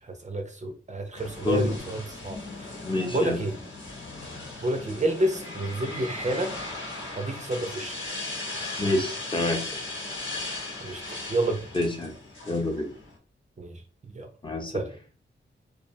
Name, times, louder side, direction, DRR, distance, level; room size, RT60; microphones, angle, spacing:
voice 1, 0.0-2.7 3.1-3.5 4.6-6.6 7.1-8.0 10.8-11.7 13.6-14.3 14.7-14.9, right 1 dB, 35° right, 0.5 m, -30 dB
sound 1, 1.1-13.1, left 2 dB, 75° left, 1.0 m, -37 dB
voice 2, 2.9-3.4 8.8-9.6 11.7-12.1 12.5-12.9 14.4-14.7, left 2 dB, 25° left, 0.7 m, -27 dB
2.4 x 2.2 x 2.6 m
cardioid pair, 65°, 20 cm